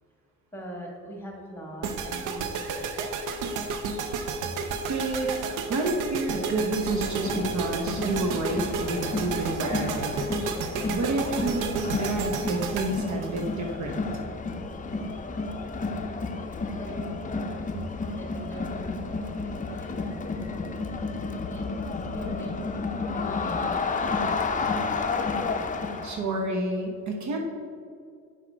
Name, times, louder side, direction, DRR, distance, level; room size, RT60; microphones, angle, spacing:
voice 1, 0.5-2.9 16.8-17.5 18.2-20.0 21.5-21.7 22.1-23.7, right 1 dB, 10° left, 0 dB, 1.6 m, -42 dB
sound 1, 1.8-14.0, right 5 dB, 90° right, 0.6 m, -32 dB
voice 2, 4.9-5.3 5.7-10.2 10.9-14.0 26.0-27.4, right 2 dB, 70° right, 2 dB, 1.0 m, -29 dB
Crowd, 6.8-26.2, left 3 dB, 25° left, 0.5 m, -31 dB
6.0 x 4.8 x 4.5 m, 2.3 s
cardioid pair, 90°, 30 cm